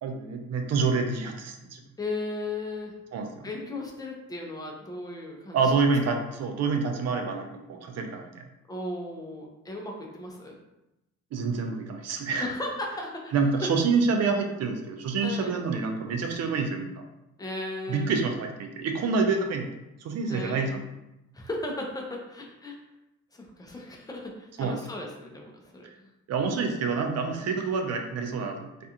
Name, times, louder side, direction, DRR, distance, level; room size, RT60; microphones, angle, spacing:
voice 1, 0.0-1.8 3.1-3.3 5.5-8.4 11.3-12.5 13.3-17.0 17.9-19.7 20.0-20.8 24.6-24.8 26.3-28.7, right 4 dB, 60° right, 4 dB, 0.5 m, -27 dB
voice 2, 2.0-2.9 3.4-5.7 8.7-10.6 12.4-13.3 13.6-13.7 15.2-15.6 17.4-18.3 20.3-20.8 21.3-22.8 23.3-26.1 27.4-27.5, left 2 dB, 10° left, 0 dB, 0.5 m, -36 dB
2.5 x 2.3 x 2.8 m, 0.92 s
cardioid pair, 90°, 30 cm